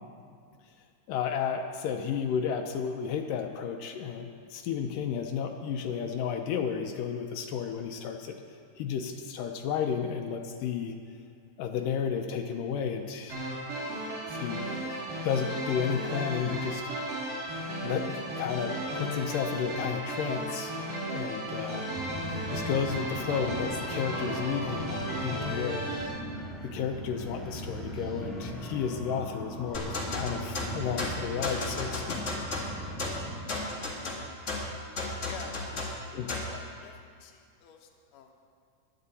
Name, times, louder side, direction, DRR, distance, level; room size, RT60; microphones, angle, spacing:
voice 1, 1.1-8.4 8.8-11.0 11.6-13.4 14.3-14.9 15.2-16.9 17.8-20.8 21.1-21.9 22.5-26.0 26.6-32.2 36.1-36.3, left 7 dB, 80° left, 4 dB, 2.3 m, -32 dB
sound 1, 13.3-26.1, right 1 dB, 75° right, 4.4 m, -35 dB
sound 2, 21.9-33.4, right 1 dB, ahead, 0.4 m, -39 dB
sound 3, 29.7-36.6, left 2 dB, 40° left, 1.0 m, -34 dB
voice 2, 35.3-36.1 36.5-36.9 37.2-38.5, left 8 dB, 65° left, 2 dB, 1.8 m, -48 dB
16.5 x 10.5 x 4.2 m, 2.3 s
omnidirectional pair, 4.0 m